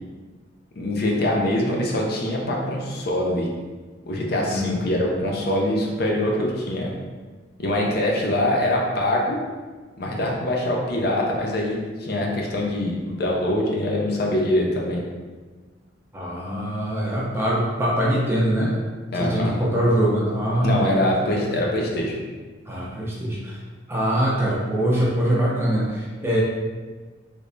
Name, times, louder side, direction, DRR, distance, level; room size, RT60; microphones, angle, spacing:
voice 1, 0.8-3.5 4.1-6.9 7.6-9.4 10.0-15.0 19.1-19.5 20.6-22.2, left 1 dB, 50° left, -1 dB, 0.5 m, -23 dB
voice 2, 4.4-4.7 16.1-18.8 19.1-21.1 21.5-21.6 22.7-23.6 23.9-26.4, equal, 10° right, -5 dB, 0.5 m, -23 dB
3.3 x 3.1 x 2.6 m, 1.4 s
head